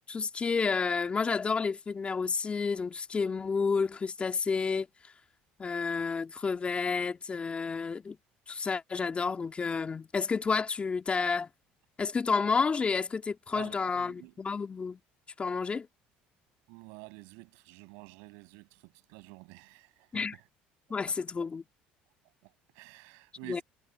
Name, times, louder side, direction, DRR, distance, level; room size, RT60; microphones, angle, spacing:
voice 1, 0.1-4.9 5.6-8.2 8.5-11.5 12.0-15.0 15.4-15.9 20.1-20.4 20.9-21.6 23.5-23.6, left 5 dB, 30° left, 2.3 m, -30 dB
voice 2, 13.5-14.3 16.7-20.4 21.1-21.2 22.4-23.6, right 33 dB, 80° right, 7.6 m, -50 dB
supercardioid pair, 85°, 4 cm